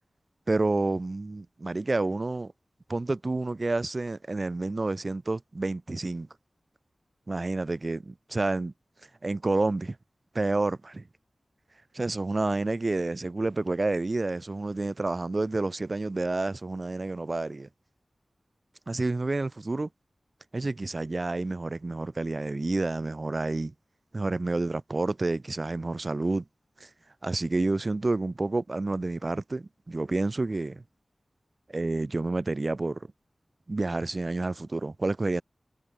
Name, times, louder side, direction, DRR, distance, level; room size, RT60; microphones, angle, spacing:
voice 1, 0.5-2.5 2.9-6.3 7.3-8.7 9.2-10.0 10.3-11.0 11.9-17.7 18.9-19.9 20.5-23.7 24.1-26.4 26.8-26.9 27.2-30.8 31.7-33.1 33.7-35.4, right 2 dB, 45° right, 5.9 m, -29 dB
wide cardioid pair, 60°, 0 cm